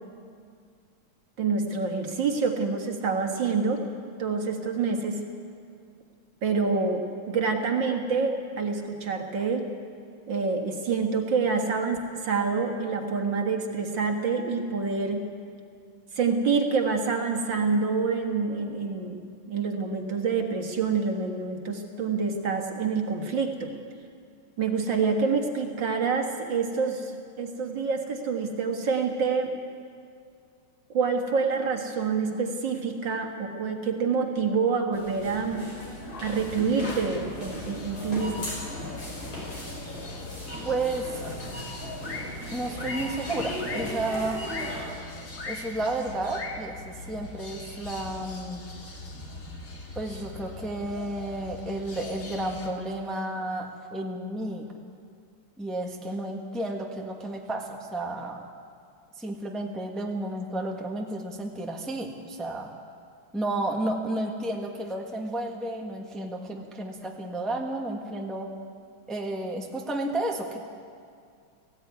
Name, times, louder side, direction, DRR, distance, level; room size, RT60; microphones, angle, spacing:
voice 1, 1.4-3.8 4.2-5.2 6.4-9.7 10.3-15.2 16.2-19.2 19.5-23.7 24.6-29.5 30.9-35.7 36.2-38.5, right 5 dB, 60° right, 3 dB, 2.3 m, -27 dB
sound 1, 34.9-44.9, left 1 dB, 75° left, 7.0 m, -38 dB
sound 2, 36.2-52.7, left 2 dB, 40° left, 2.2 m, -40 dB
voice 2, 40.6-41.4 42.5-44.4 45.5-48.6 49.9-54.7 55.6-58.4 59.2-62.7 63.3-68.5 69.1-70.6, right 2 dB, ahead, 1 dB, 1.3 m, -32 dB
18.0 x 16.0 x 9.5 m, 2.3 s
omnidirectional pair, 2.3 m